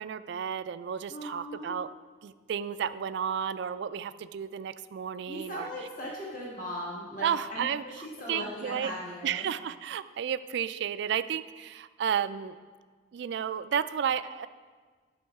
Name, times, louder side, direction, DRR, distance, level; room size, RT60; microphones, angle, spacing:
voice 1, 0.0-1.9 2.2-5.7 7.2-8.9 9.2-12.6 13.1-14.5, right 8 dB, 65° right, 13 dB, 0.3 m, -32 dB
voice 2, 1.1-1.8 5.3-9.5, equal, 45° left, -5 dB, 1.4 m, -39 dB
11.5 x 6.3 x 3.5 m, 1.5 s
head